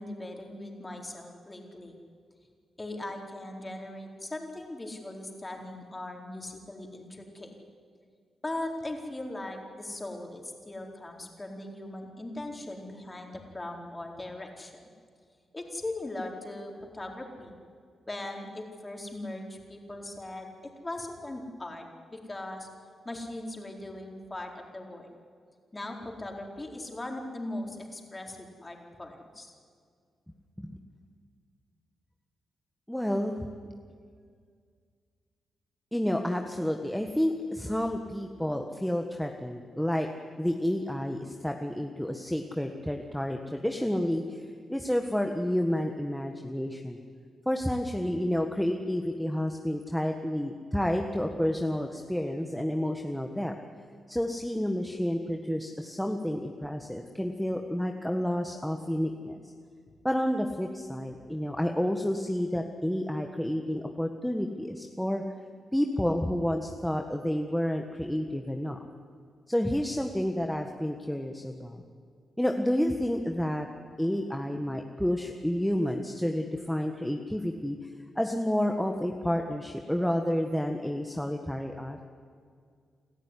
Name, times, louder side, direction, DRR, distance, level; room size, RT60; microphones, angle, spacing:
voice 1, 0.0-1.9 2.8-7.5 8.4-14.7 15.5-17.6 18.1-21.8 22.1-22.7 23.0-25.1 25.7-29.5, left 1 dB, 20° left, 1 dB, 4.4 m, -39 dB
voice 2, 32.9-33.4 35.9-40.1 40.4-47.0 47.4-53.5 54.1-59.5 60.0-65.2 65.7-68.8 69.5-71.8 72.4-73.7 74.0-82.0, equal, 5° left, 3 dB, 1.6 m, -30 dB
28.5 x 13.5 x 10.0 m, 2.1 s
cardioid pair, 75°, 0 cm